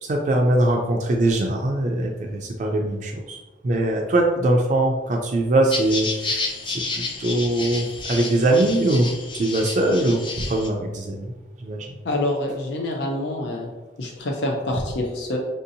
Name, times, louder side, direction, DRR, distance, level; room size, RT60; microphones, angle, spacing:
voice 1, 0.0-11.3 11.6-12.0, right 1 dB, 45° right, 0 dB, 0.3 m, -22 dB
sound 1, 5.7-10.7, left 3 dB, 30° left, 0.4 m, -30 dB
voice 2, 12.0-13.7 14.0-15.4, left 1 dB, 80° left, 0 dB, 0.5 m, -26 dB
4.9 x 2.7 x 2.6 m, 1.2 s
head